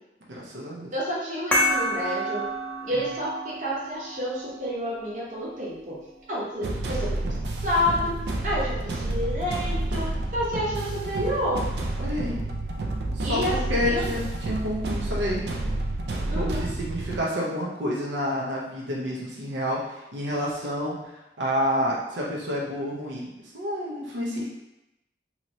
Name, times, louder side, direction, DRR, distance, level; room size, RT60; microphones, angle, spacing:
voice 1, 0.3-0.9 12.0-12.4 13.1-15.4 16.3-16.5 16.8-21.0 21.4-23.3 23.5-24.4, equal, 90° right, -4 dB, 0.7 m, -29 dB
voice 2, 0.9-2.5 2.8-6.0 6.3-7.3 7.6-8.2 8.4-11.7 13.2-14.0 16.2-16.6, equal, 45° right, -6 dB, 0.8 m, -29 dB
sound 1, 1.5-6.6, equal, 10° left, 0.5 m, -30 dB
sound 2, 6.6-17.2, right 2 dB, 65° right, 0.4 m, -29 dB
3.0 x 2.9 x 2.7 m, 0.91 s
head